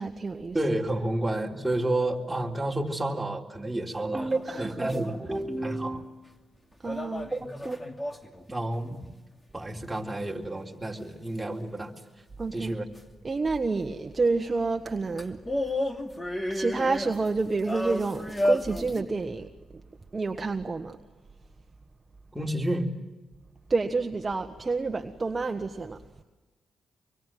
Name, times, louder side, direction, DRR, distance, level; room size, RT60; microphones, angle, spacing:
voice 1, 0.0-0.6 4.5-5.0 6.8-7.3 12.4-12.7 13.2-15.4 16.5-19.5 20.1-21.0 23.7-26.0, right 3 dB, 35° right, 5 dB, 1.5 m, -29 dB
voice 2, 0.5-6.1 7.3-8.0 8.5-9.0 9.5-11.9 12.5-12.9 22.3-23.0, right 1 dB, 10° right, 0 dB, 3.8 m, -30 dB
sound 1, 4.1-5.4 6.8-8.5 13.0-13.1 15.2-19.0, left 1 dB, 20° left, 2.7 m, -32 dB
25.5 x 24.0 x 7.7 m, 1.2 s
cardioid pair, 65°, 0 cm